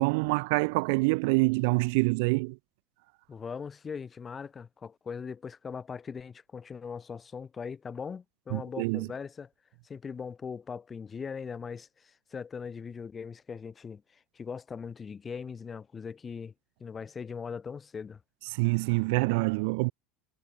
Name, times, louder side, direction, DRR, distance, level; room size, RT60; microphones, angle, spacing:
voice 1, 0.0-2.6 8.5-9.1 18.5-19.9, right 29 dB, 65° right, 1.6 m, -26 dB
voice 2, 3.3-9.5 9.8-14.0 14.3-16.5 16.8-18.2, left 6 dB, 15° left, 5.0 m, -40 dB
cardioid pair, 165°, 0 cm